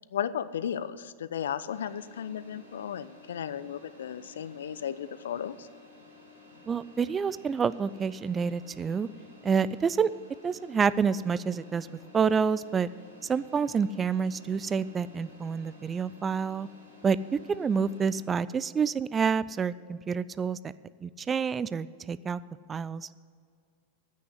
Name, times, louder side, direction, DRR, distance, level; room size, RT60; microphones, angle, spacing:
voice 1, 0.1-5.7, left 9 dB, 65° left, 15 dB, 0.5 m, -35 dB
sound 1, 1.7-18.2, left 3 dB, 85° right, 3.6 m, -53 dB
voice 2, 6.7-9.1 9.4-10.1 10.4-11.9 12.1-12.9 13.2-16.7 17.0-17.2 17.5-20.6 21.0-22.4 22.7-23.1, right 6 dB, 20° right, 17 dB, 0.3 m, -28 dB
9.6 x 8.5 x 9.5 m, 2.1 s
figure-of-eight pair, 90°, 0 cm